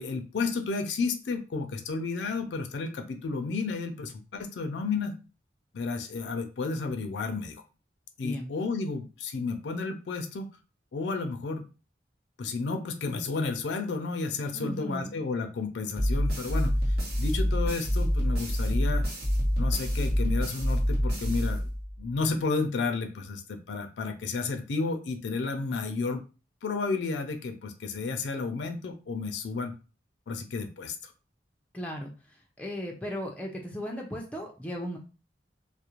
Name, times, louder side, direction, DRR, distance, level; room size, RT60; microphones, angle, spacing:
voice 1, 0.0-5.1 5.7-7.6 8.2-10.5 10.9-11.7 12.4-16.8 17.2-19.1 19.6-21.6 22.0-26.2 26.6-29.7 30.3-31.1, left 4 dB, 70° left, 7 dB, 0.4 m, -32 dB
voice 2, 14.5-15.2 31.7-32.1 32.6-35.0, equal, 5° left, 0 dB, 0.4 m, -36 dB
sound 1, 16.0-22.1, equal, 55° right, 0.9 m, -27 dB
2.4 x 2.0 x 2.9 m, 0.33 s
head